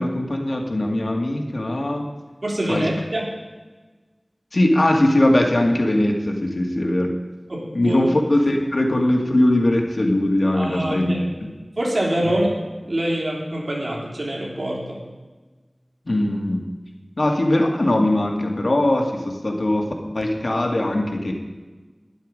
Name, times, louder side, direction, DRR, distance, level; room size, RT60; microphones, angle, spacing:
voice 1, 0.0-2.0 2.7-2.9 4.5-7.1 7.7-11.5 16.1-16.6 17.2-19.9 20.1-21.3, left 1 dB, 75° left, 2 dB, 1.9 m, -20 dB
voice 2, 2.4-3.3 7.5-8.1 10.5-11.2 11.8-12.5 12.8-15.0, right 1 dB, 70° right, -2 dB, 3.4 m, -25 dB
12.0 x 11.0 x 5.2 m, 1.3 s
wide cardioid pair, 45°, 0 cm